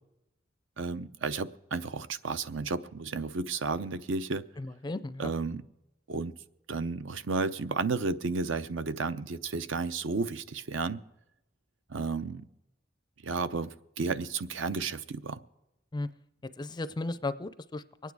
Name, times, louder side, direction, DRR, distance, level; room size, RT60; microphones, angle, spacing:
voice 1, 0.8-4.4 5.2-5.6 6.1-6.3 6.7-11.0 11.9-12.4 13.2-15.4, right 4 dB, 75° right, 13 dB, 0.7 m, -32 dB
voice 2, 4.6-5.3 15.9-16.1 16.4-18.1, left 2 dB, 20° left, 14 dB, 0.4 m, -35 dB
24.0 x 9.3 x 4.7 m, 0.92 s
head